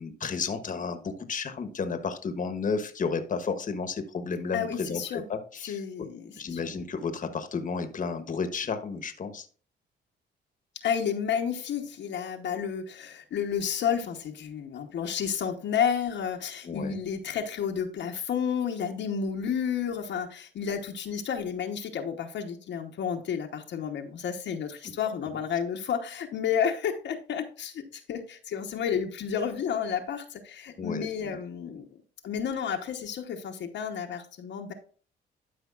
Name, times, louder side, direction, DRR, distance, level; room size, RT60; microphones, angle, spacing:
voice 1, 0.0-5.8 6.3-9.5 16.6-17.0 30.8-31.4, left 5 dB, 40° left, 8 dB, 1.2 m, -32 dB
voice 2, 4.5-5.2 5.6-6.6 10.8-31.8 32.2-34.7, left 7 dB, 65° left, 3 dB, 1.0 m, -31 dB
12.0 x 5.0 x 2.4 m, 0.41 s
cardioid pair, 90°, 20 cm